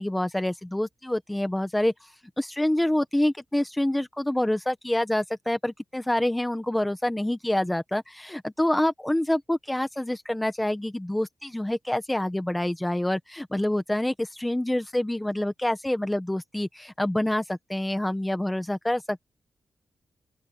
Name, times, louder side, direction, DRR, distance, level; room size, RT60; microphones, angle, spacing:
voice 1, 0.0-2.1 2.4-19.2, left 1 dB, 10° left, 1.1 m, -27 dB
open air
wide cardioid pair, 135°, 0 cm